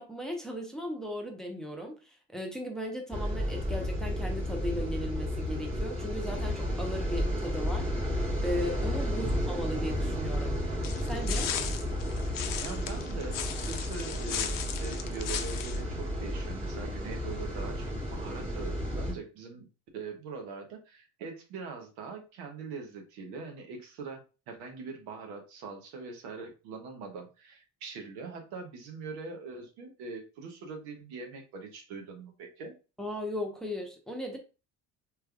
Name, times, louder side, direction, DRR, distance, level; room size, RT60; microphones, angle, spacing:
voice 1, 0.0-7.9 8.4-10.6 11.1-11.5 33.0-34.4, equal, ahead, 1 dB, 0.9 m, -37 dB
sound 1, 3.1-19.1, equal, 15° right, 1.5 m, -32 dB
sound 2, 10.8-15.8, left 9 dB, 55° left, 0.6 m, -36 dB
voice 2, 12.6-19.7 19.9-32.7, right 4 dB, 85° right, 3 dB, 1.0 m, -42 dB
3.2 x 3.0 x 2.3 m, 0.31 s
supercardioid pair, 75°, 39 cm